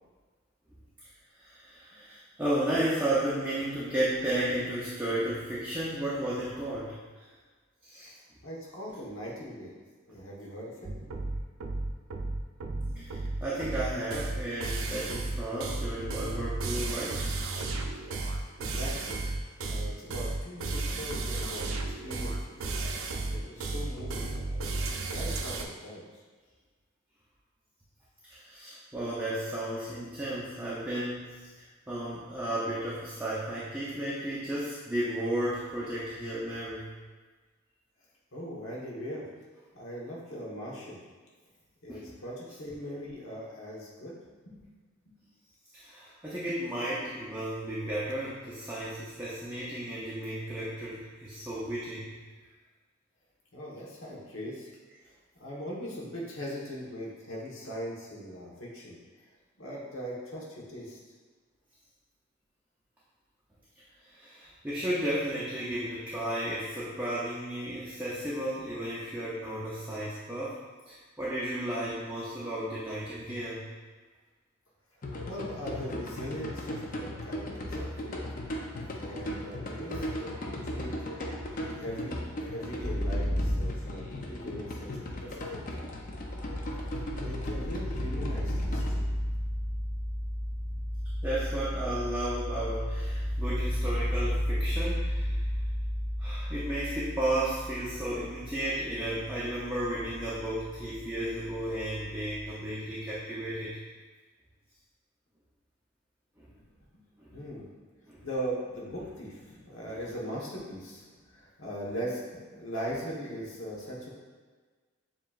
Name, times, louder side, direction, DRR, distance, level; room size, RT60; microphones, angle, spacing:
voice 1, 1.4-6.9 7.8-8.1 13.0-17.3 28.3-36.9 41.9-42.0 45.7-52.1 64.1-70.6 70.9-73.6 91.2-95.4 96.2-103.8 106.4-106.5 107.2-107.3 108.1-108.2, right 1 dB, 10° right, -9 dB, 0.5 m, -33 dB
voice 2, 8.4-9.7 10.1-10.9 18.6-19.2 19.6-22.6 23.2-24.7 25.1-26.2 38.3-39.3 39.7-41.0 41.8-44.2 44.5-44.7 53.5-54.7 55.4-59.0 59.6-61.0 75.2-78.2 79.0-80.3 80.6-80.9 81.6-85.9 86.8-89.1 107.3-107.7 108.0-114.1, equal, 75° left, -4 dB, 1.2 m, -40 dB
sound 1, 10.8-25.7, right 2 dB, 75° right, 0.5 m, -33 dB
sound 2, 75.0-88.9, left 1 dB, 40° left, 0.5 m, -37 dB
sound 3, 82.8-84.5 85.6-102.5, equal, 20° left, 1.3 m, -33 dB
7.1 x 3.0 x 2.4 m, 1.4 s
head